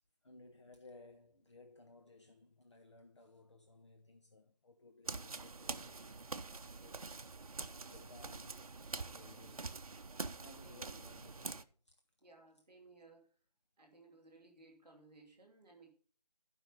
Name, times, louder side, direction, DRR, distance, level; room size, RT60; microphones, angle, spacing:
voice 1, 0.2-7.3 7.9-9.8 10.3-12.0 12.2-12.3, left 2 dB, 45° left, 0.7 m, -60 dB
sound 1, 5.0-11.6, right 3 dB, 60° right, 0.7 m, -45 dB
voice 2, 10.6-11.0 12.2-13.3 13.8-15.9, right 3 dB, ahead, 0.8 m, -61 dB
11.0 x 5.4 x 5.3 m
figure-of-eight pair, 170°, 21 cm